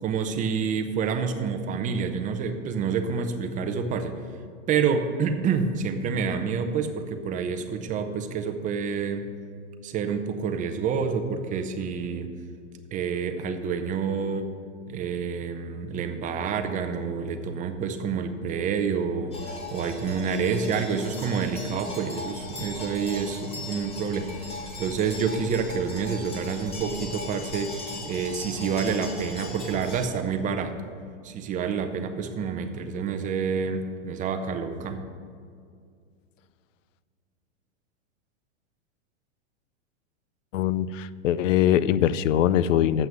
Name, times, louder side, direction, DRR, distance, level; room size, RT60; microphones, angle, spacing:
voice 1, 0.0-4.2 4.7-9.3 9.8-12.3 12.9-14.5 14.9-24.3 24.8-30.9 31.2-35.0, right 6 dB, 20° right, 7 dB, 0.6 m, -28 dB
sound 1, 19.3-30.1, left 2 dB, 15° left, 1.3 m, -38 dB
voice 2, 40.5-43.1, left 11 dB, 75° left, 17 dB, 0.5 m, -22 dB
7.6 x 6.0 x 7.4 m, 2.2 s
hypercardioid pair, 135°, 38 cm